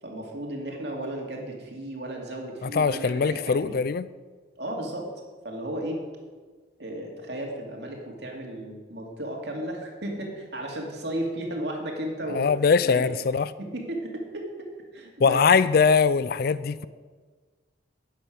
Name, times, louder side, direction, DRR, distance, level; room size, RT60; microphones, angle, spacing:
voice 1, 0.0-3.8 4.6-5.1 5.4-6.0 6.8-12.5 12.8-13.1 13.6-15.4, right 1 dB, 60° right, 2.5 m, -34 dB
voice 2, 2.6-4.1 12.3-13.5 15.2-16.9, left 5 dB, 55° left, 0.4 m, -22 dB
11.5 x 9.3 x 6.3 m
head